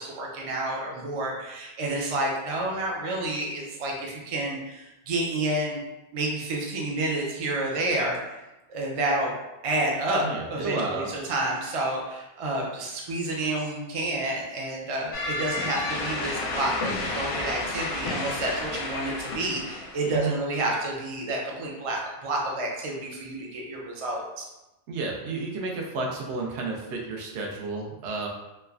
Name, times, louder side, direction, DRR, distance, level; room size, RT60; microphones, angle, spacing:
voice 1, 0.0-5.8 6.1-8.4 8.7-9.3 9.6-24.5, right 2 dB, 50° right, -2 dB, 0.4 m, -29 dB
voice 2, 10.2-11.1 20.1-20.4 24.9-28.3, right 3 dB, 75° right, 0 dB, 0.8 m, -31 dB
sound 1, 15.1-20.2, left 2 dB, 85° left, 0.9 m, -31 dB
3.1 x 2.1 x 2.3 m, 0.98 s
omnidirectional pair, 1.2 m